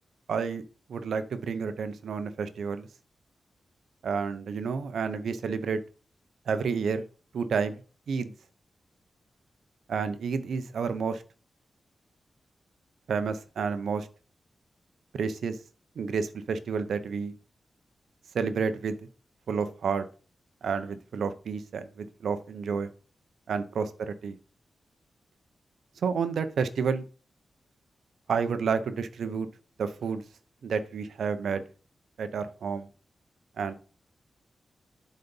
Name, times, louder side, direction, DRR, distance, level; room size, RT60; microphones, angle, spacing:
voice 1, 0.3-0.6 0.9-2.9 4.0-5.8 6.5-7.0 7.3-7.8 8.1-8.3 9.9-11.2 13.1-14.1 15.1-15.6 16.0-17.3 18.3-19.1 19.5-20.1 20.6-22.9 23.5-24.3 26.0-27.0 28.3-29.5 29.8-30.2 30.6-31.6 32.2-32.9 33.6-33.7, right 5 dB, 85° right, 10 dB, 0.8 m, -30 dB
7.9 x 4.2 x 5.4 m, 0.38 s
cardioid pair, 65°, 0 cm